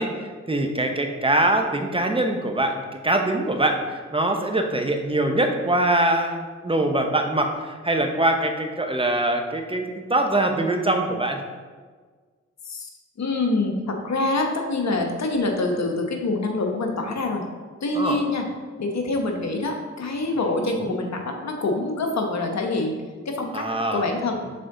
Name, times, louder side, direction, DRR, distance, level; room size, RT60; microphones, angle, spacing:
voice 1, 0.0-9.8 10.1-11.4 17.9-18.2 20.6-21.0 23.5-24.1, right 1 dB, 20° right, 3 dB, 0.9 m, -23 dB
voice 2, 13.2-17.4 17.8-18.5 18.8-23.0 23.2-23.7 23.9-24.4, left 2 dB, 60° left, 3 dB, 1.1 m, -25 dB
6.6 x 3.8 x 3.8 m, 1.5 s
supercardioid pair, 40°, 30 cm